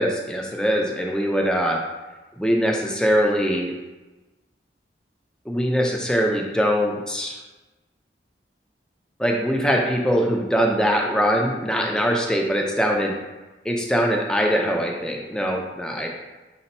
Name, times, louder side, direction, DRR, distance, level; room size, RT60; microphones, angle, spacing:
voice 1, 0.0-1.8 2.4-3.7 5.5-7.4 9.2-13.2 13.6-16.1, equal, 5° left, 0 dB, 0.4 m, -22 dB
4.1 x 2.2 x 4.0 m, 1.1 s
head